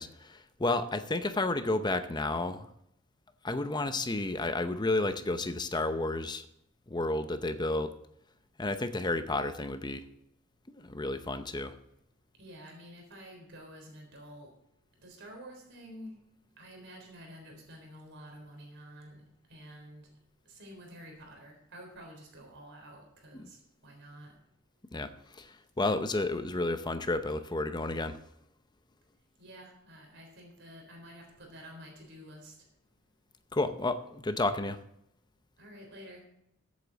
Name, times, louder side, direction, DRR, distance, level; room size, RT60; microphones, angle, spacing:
voice 1, 0.0-2.7 3.4-6.5 6.9-7.9 8.6-10.1 10.7-11.7 23.3-23.4 24.9-28.2 33.5-34.8, left 2 dB, 20° left, 10 dB, 0.7 m, -31 dB
voice 2, 12.4-14.5 15.0-16.2 16.6-19.2 19.5-20.1 20.5-24.4 29.4-32.6 35.6-36.2, equal, 60° right, 2 dB, 3.7 m, -49 dB
15.0 x 8.4 x 4.0 m, 0.76 s
head